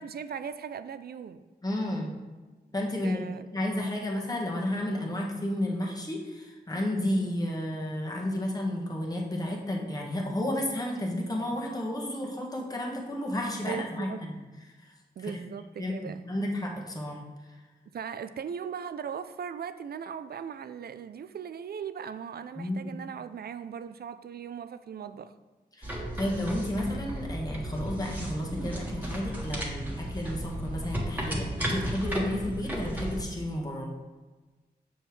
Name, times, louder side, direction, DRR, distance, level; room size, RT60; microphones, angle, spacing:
voice 1, 0.0-1.4 3.0-3.5 13.7-14.2 15.2-16.2 17.9-25.3, right 7 dB, 65° right, 12 dB, 0.4 m, -38 dB
voice 2, 1.6-2.2 2.7-14.4 14.8-14.9 15.2-15.4 15.8-15.9 16.2-17.6 22.6-22.9 25.7-33.9, left 1 dB, 20° left, -2 dB, 1.3 m, -32 dB
sound 1, 25.8-33.2, right 1 dB, 10° right, 1.6 m, -34 dB
6.7 x 5.4 x 3.2 m, 1.2 s
cardioid pair, 55°, 18 cm